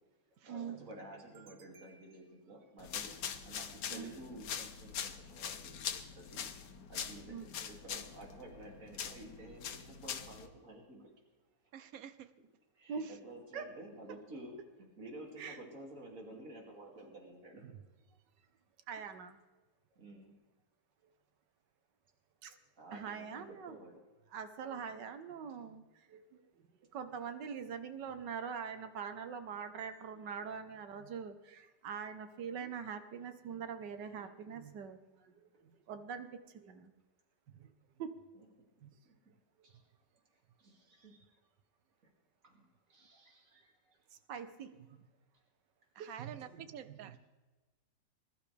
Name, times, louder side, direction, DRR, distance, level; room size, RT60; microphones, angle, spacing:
voice 1, 0.4-3.1 3.4-6.5 6.9-11.1 12.7-17.6 19.9-20.4 22.8-24.0 38.3-38.5 39.0-39.1 39.6-39.8 40.6-41.3 42.4-42.6 42.9-43.7, right 1 dB, 50° right, 0 dB, 2.9 m, -52 dB
sound 1, 2.8-10.5, left 8 dB, 80° left, 1.5 m, -43 dB
voice 2, 11.7-12.3 13.0-13.1 45.9-47.2, right 9 dB, 65° right, 12 dB, 1.0 m, -48 dB
voice 3, 18.9-19.4 22.4-22.6 22.9-23.8 24.3-25.8 26.1-26.4 26.9-36.9 37.5-37.7 38.0-38.1 38.8-38.9 44.3-45.0 46.0-47.2, right 7 dB, 90° right, 9 dB, 1.6 m, -44 dB
21.0 x 12.0 x 3.4 m, 1.2 s
omnidirectional pair, 1.8 m